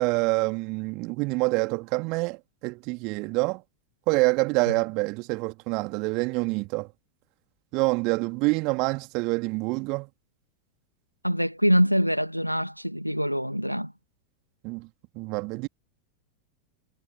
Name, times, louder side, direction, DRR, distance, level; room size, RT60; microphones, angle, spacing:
voice 1, 0.0-3.6 4.1-6.9 7.7-10.1 14.6-14.9 15.1-15.7, right 27 dB, 40° right, 2.7 m, -26 dB
voice 2, 11.2-13.9, equal, 90° right, 2.1 m, -24 dB
figure-of-eight pair, 90°, 0 cm